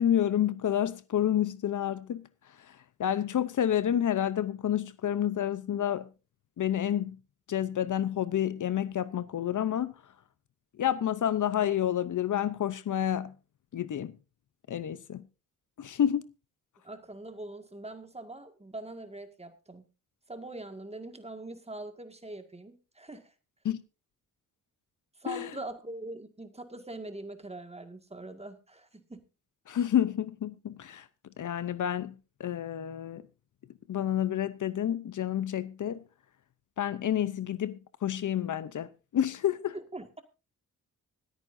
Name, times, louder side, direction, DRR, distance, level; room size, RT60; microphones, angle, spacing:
voice 1, 0.0-2.3 2.7-6.1 6.6-7.2 7.5-9.9 10.8-13.3 13.7-14.1 14.7-15.3 15.8-16.3 23.6-23.8 25.3-25.5 29.7-31.1 31.4-33.2 33.9-36.0 36.8-39.8, left 10 dB, 65° left, 0.7 m, -29 dB
voice 2, 16.8-19.8 20.3-23.3 25.2-29.2 39.7-40.2, right 2 dB, 20° right, 1.9 m, -43 dB
25.0 x 9.1 x 2.6 m
cardioid pair, 70°, 34 cm